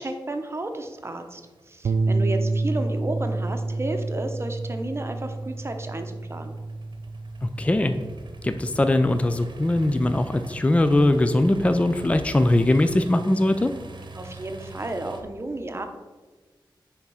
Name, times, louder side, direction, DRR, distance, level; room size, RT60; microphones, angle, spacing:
voice 1, 0.0-1.4 1.7-6.5 14.1-15.9, right 2 dB, 30° right, 5 dB, 0.8 m, -32 dB
sound 1, 0.7-15.2, right 3 dB, 60° right, 0.9 m, -43 dB
sound 2, 1.8-10.2, right 3 dB, 80° right, 0.4 m, -29 dB
voice 2, 7.4-7.9 8.4-13.7, left 1 dB, 15° left, 9 dB, 0.4 m, -21 dB
8.9 x 3.6 x 5.5 m, 1.3 s
wide cardioid pair, 115°, 9 cm